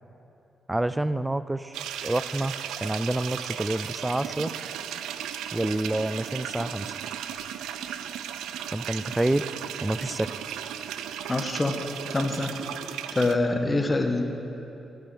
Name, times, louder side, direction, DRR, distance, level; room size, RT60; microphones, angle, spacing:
voice 1, 0.7-1.8 2.0-2.5 2.8-4.5 5.5-7.0 8.7-9.5 9.8-10.4, right 1 dB, 20° right, 15 dB, 0.5 m, -28 dB
sound 1, 1.7-13.3, right 9 dB, 85° right, 0.4 m, -35 dB
voice 2, 11.3-11.8 12.1-12.5 13.1-14.2, left 2 dB, 30° left, 5 dB, 1.3 m, -25 dB
16.0 x 5.5 x 7.8 m, 2.9 s
supercardioid pair, 45°, 0 cm